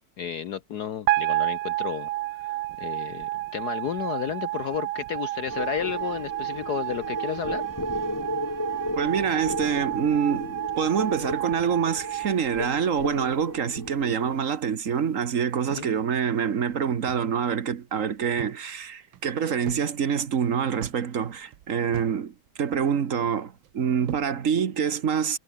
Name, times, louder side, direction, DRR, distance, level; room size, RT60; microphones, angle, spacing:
voice 1, 0.2-2.1 2.4-7.6 15.7-15.9, left 8 dB, 60° left, 1.3 m, -32 dB
sound 1, 1.1-13.3, right 17 dB, 90° right, 1.5 m, -31 dB
sound 2, 5.5-14.4, left 1 dB, 10° left, 2.5 m, -35 dB
voice 2, 9.0-25.4, right 7 dB, 45° right, 1.3 m, -26 dB
sound 3, 15.7-17.4 17.7-17.8 18.1-18.6 19.0-19.9 20.2-22.2 22.5-23.1 23.6-24.4, right 13 dB, 75° right, 1.5 m, -42 dB
omnidirectional pair, 2.2 m